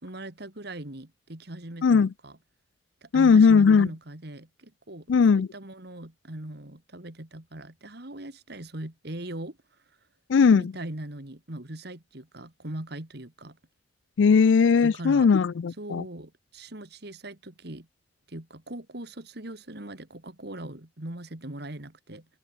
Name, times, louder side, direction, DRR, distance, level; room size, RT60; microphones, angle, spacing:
voice 1, 0.0-2.4 3.0-5.1 5.3-9.6 10.5-13.6 14.8-15.3 15.8-17.9 18.3-22.3, right 1 dB, 55° right, 2.5 m, -40 dB
voice 2, 3.1-3.9 5.1-5.5 10.3-10.7 14.2-16.0, left 5 dB, 75° left, 0.4 m, -18 dB
head